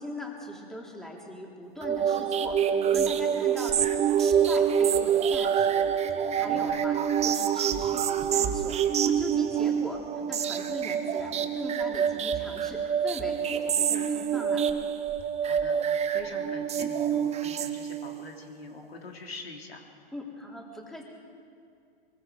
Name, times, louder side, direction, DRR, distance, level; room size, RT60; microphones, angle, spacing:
voice 1, 0.0-3.7 4.2-7.0 7.2-10.0 10.3-14.7 20.1-21.0, left 1 dB, ahead, -1 dB, 3.5 m, -40 dB
sound 1, 1.8-18.2, right 8 dB, 20° right, 1.1 m, -26 dB
voice 2, 6.5-6.9 15.4-19.8, left 3 dB, 85° left, 1 dB, 3.2 m, -44 dB
23.5 x 22.5 x 5.2 m, 2.5 s
hypercardioid pair, 105°, 30 cm